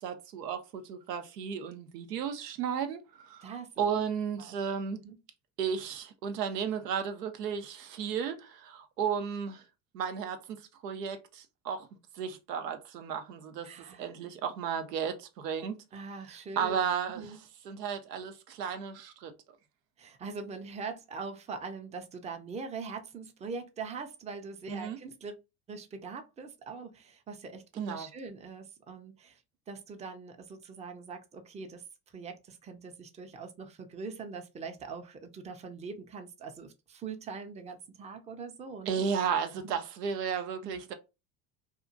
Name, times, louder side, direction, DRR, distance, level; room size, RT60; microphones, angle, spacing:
voice 1, 0.0-3.5 3.8-5.0 5.6-9.6 9.9-11.9 12.2-13.7 14.0-15.8 16.6-17.3 17.7-19.3 24.7-25.0 27.7-28.1 38.9-40.9, right 7 dB, 85° right, 0.6 m, -34 dB
voice 2, 3.4-3.8 4.4-4.5 5.0-5.2 13.6-14.1 15.9-16.8 17.1-17.4 20.0-25.4 25.7-29.4 29.7-31.8 32.1-38.9 39.6-39.8 40.6-40.8, right 4 dB, 15° right, 0.5 m, -42 dB
2.8 x 2.4 x 2.5 m
hypercardioid pair, 70°, 47 cm